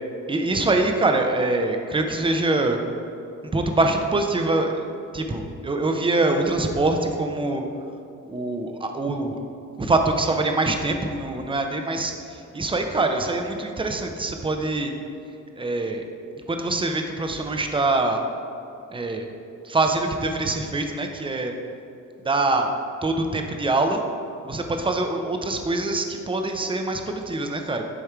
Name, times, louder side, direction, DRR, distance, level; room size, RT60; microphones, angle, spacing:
voice 1, 0.3-2.8 3.5-4.8 5.1-7.6 8.3-9.4 9.8-14.9 15.6-16.0 16.5-18.2 18.9-19.3 19.6-21.5 22.2-22.7 23.0-24.0 24.4-27.8, right 2 dB, 15° right, 4 dB, 0.7 m, -24 dB
10.0 x 3.5 x 4.6 m, 2.6 s
cardioid pair, 90°, 30 cm